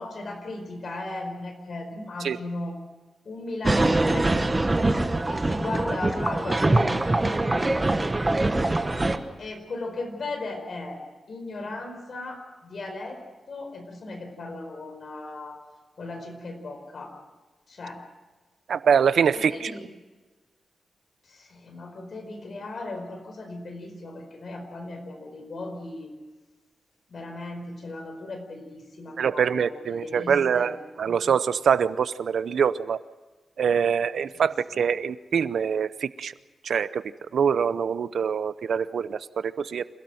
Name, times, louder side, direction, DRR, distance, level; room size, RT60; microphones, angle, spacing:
voice 1, 0.0-2.7 3.2-4.4 5.3-7.8 9.4-11.0 11.3-13.2 13.5-15.6 16.0-17.2 17.7-18.0 19.3-19.8 21.2-26.1 27.1-30.7 31.1-31.2 34.3-34.4, left 2 dB, 50° left, 4 dB, 4.8 m, -37 dB
sound 1, 3.6-9.2, right 2 dB, 20° right, 1.2 m, -23 dB
voice 2, 18.7-19.7 29.2-33.0 33.6-36.3 36.6-37.0 37.3-39.8, right 7 dB, 75° right, 15 dB, 0.7 m, -24 dB
27.5 x 17.0 x 7.8 m, 1.3 s
wide cardioid pair, 170°, 0 cm